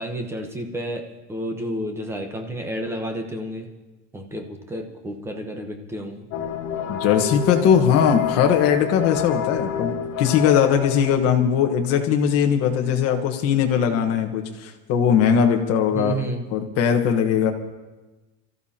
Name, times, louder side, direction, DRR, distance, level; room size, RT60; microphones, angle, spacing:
voice 1, 0.0-3.7 4.1-6.3 15.9-16.4, right 1 dB, 5° right, 4 dB, 0.9 m, -31 dB
sound 1, 6.3-11.3, left 8 dB, 80° left, 1.9 m, -28 dB
voice 2, 6.9-16.2 16.5-17.5, left 8 dB, 40° left, 4 dB, 1.4 m, -20 dB
27.0 x 14.0 x 2.9 m, 1.1 s
cardioid pair, 165°, 36 cm